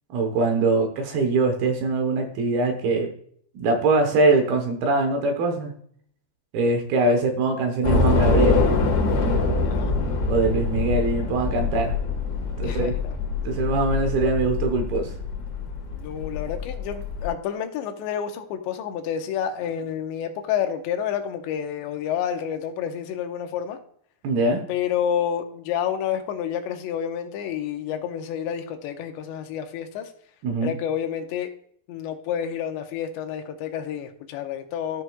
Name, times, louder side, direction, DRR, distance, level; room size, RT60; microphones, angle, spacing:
voice 1, 0.1-3.1 3.5-5.7 6.5-8.6 10.3-12.0 12.6-12.9 13.4-15.1 24.2-24.6 30.4-30.7, right 3 dB, 70° right, 5 dB, 2.7 m, -22 dB
Train / Subway metro underground, 7.8-17.3, left 4 dB, 55° left, 2.3 m, -24 dB
voice 2, 9.6-9.9 12.6-13.1 15.9-23.8 24.7-30.1 30.6-31.5 31.9-35.0, left 9 dB, 85° left, 6 dB, 3.0 m, -29 dB
13.5 x 6.3 x 2.3 m, 0.63 s
omnidirectional pair, 5.0 m